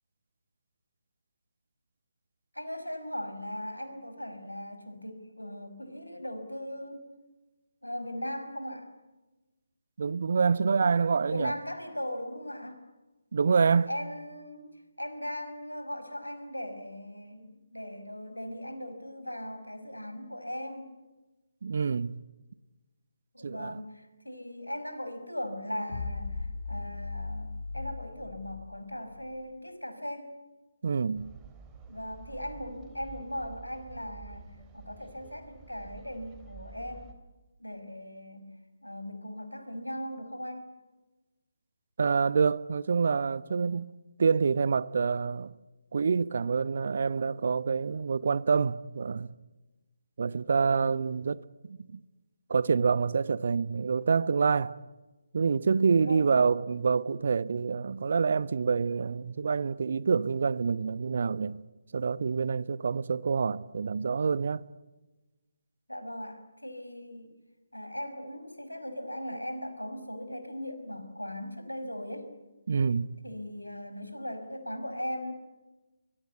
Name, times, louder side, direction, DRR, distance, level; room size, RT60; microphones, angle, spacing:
voice 1, 2.5-7.0 7.8-8.9 11.3-12.8 13.9-14.7 15.0-20.9 23.3-30.3 31.9-37.2 37.6-38.5 38.8-40.7 56.0-56.5 65.9-67.3 67.7-72.3 73.2-75.3, left 1 dB, 85° left, 5.4 m, -39 dB
voice 2, 10.0-11.5 13.3-13.9 21.6-22.2 23.4-23.8 30.8-31.3 42.0-43.8 44.2-45.5 45.9-49.3 50.2-52.0 52.5-54.7 55.3-61.6 61.9-64.6 72.7-73.1, right 5 dB, 50° right, 0.9 m, -27 dB
sound 1, 25.9-29.3, left 3 dB, 55° left, 3.1 m, -38 dB
sound 2, 31.1-37.1, right 6 dB, 15° right, 3.0 m, -50 dB
24.5 x 22.5 x 8.2 m
figure-of-eight pair, 145°, 0 cm